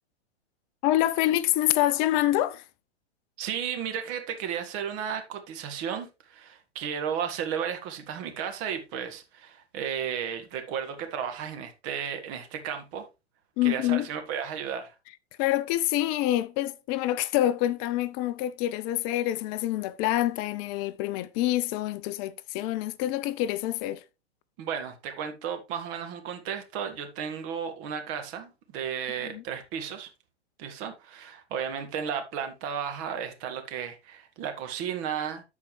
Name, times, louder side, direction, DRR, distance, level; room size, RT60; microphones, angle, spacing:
voice 1, 0.8-2.6 13.6-14.1 15.4-24.0 29.2-29.4, left 14 dB, 30° left, 0.5 m, -26 dB
voice 2, 3.4-13.1 13.6-14.9 24.6-30.1 30.6-35.4, right 8 dB, 40° right, 1.7 m, -34 dB
13.0 x 4.6 x 3.2 m
hypercardioid pair, 110°, 33 cm